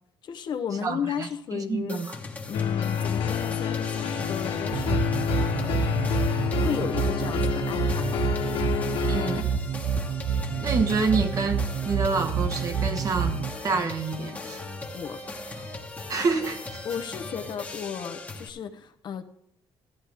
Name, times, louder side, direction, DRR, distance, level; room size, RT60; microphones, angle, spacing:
voice 1, 0.2-2.0 2.5-5.8 6.5-8.3 9.0-9.2 14.9-15.2 16.8-19.2, left 7 dB, 50° left, 0.8 m, -34 dB
voice 2, 0.8-2.2 9.1-9.5 10.6-14.6 16.1-16.8, right 4 dB, 40° right, 1.1 m, -28 dB
sound 1, 1.9-18.5, left 3 dB, 15° left, 1.2 m, -38 dB
sound 2, 2.5-9.4, left 8 dB, 85° left, 1.4 m, -28 dB
sound 3, 4.7-13.5, right 7 dB, 75° right, 0.7 m, -28 dB
13.5 x 8.9 x 3.5 m
cardioid pair, 125°, 9 cm